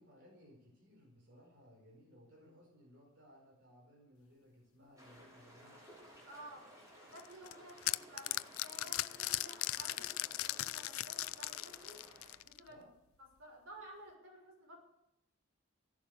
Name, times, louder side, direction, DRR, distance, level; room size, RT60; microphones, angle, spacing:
voice 1, 0.0-5.8 12.7-12.9, equal, 60° right, -2 dB, 4.9 m, -61 dB
sound 1, 5.0-12.3, equal, 15° right, 5.4 m, -58 dB
voice 2, 6.3-6.6 7.0-12.0 12.4-12.8 13.4-14.8, right 1 dB, 85° right, 1 dB, 6.2 m, -54 dB
sound 2, 7.2-12.7, left 16 dB, 85° left, 0.4 m, -38 dB
16.5 x 11.5 x 6.7 m, 0.82 s
head